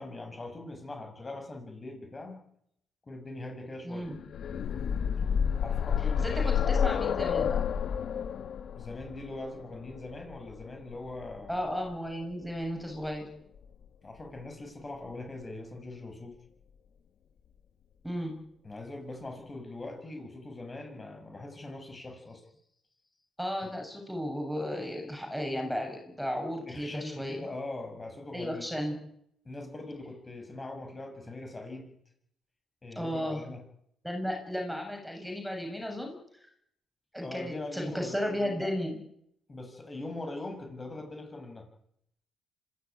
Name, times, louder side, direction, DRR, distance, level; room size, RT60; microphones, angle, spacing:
voice 1, 0.0-2.4 3.0-4.1 5.6-6.8 8.7-11.7 14.0-16.4 18.6-22.4 23.6-23.7 26.7-28.6 29.4-31.9 32.8-33.6 37.2-38.7 39.5-41.6, left 2 dB, 25° left, 4 dB, 7.8 m, -41 dB
voice 2, 3.8-4.2 6.2-7.6 11.5-13.3 18.0-18.4 23.4-27.5 28.3-29.0 32.9-33.4 34.0-36.2 37.1-39.0, equal, ahead, 2 dB, 6.8 m, -34 dB
sound 1, 4.1-11.9 13.1-13.2 13.6-13.7, left 7 dB, 65° left, 1.6 m, -30 dB
25.5 x 15.5 x 9.9 m, 0.73 s
cardioid pair, 90°, 0 cm